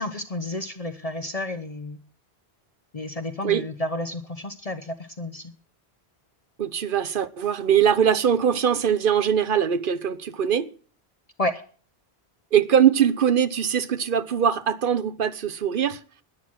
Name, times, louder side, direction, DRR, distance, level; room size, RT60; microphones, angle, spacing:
voice 1, 0.0-2.0 2.9-5.5 11.4-11.6, left 1 dB, 35° left, 0.9 m, -31 dB
voice 2, 6.6-10.7 12.5-16.0, right 8 dB, 55° right, 1.0 m, -22 dB
11.5 x 10.5 x 6.2 m
omnidirectional pair, 1.1 m